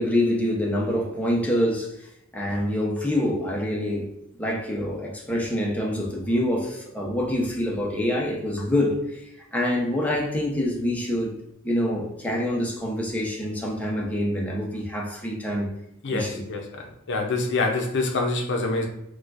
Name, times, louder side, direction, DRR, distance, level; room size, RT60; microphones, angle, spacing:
voice 1, 0.0-2.0 2.3-4.1 4.4-9.2 9.5-15.7 16.1-16.4, left 1 dB, 5° left, 0.6 m, -26 dB
voice 2, 16.0-18.9, left 3 dB, 55° left, 0.6 m, -26 dB
4.2 x 2.3 x 2.4 m
head